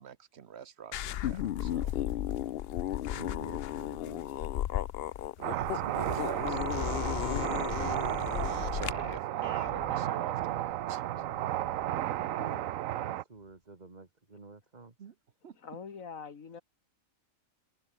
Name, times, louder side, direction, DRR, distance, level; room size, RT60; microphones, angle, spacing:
voice 1, 0.0-2.0 5.4-7.5 8.3-11.3 15.0-15.1 15.4-15.6, right 8 dB, 55° right, 1.2 m, -47 dB
sound 1, 0.9-8.9, left 12 dB, 65° left, 0.6 m, -34 dB
voice 2, 3.1-4.3 5.9-6.2 11.9-14.9, right 3 dB, 30° right, 2.1 m, -49 dB
sound 2, 5.4-13.2, right 13 dB, 80° right, 1.0 m, -33 dB
sound 3, 6.5-12.9, left 6 dB, 40° left, 1.0 m, -43 dB
voice 3, 15.6-16.6, left 6 dB, 80° left, 2.1 m, -43 dB
omnidirectional pair, 1.4 m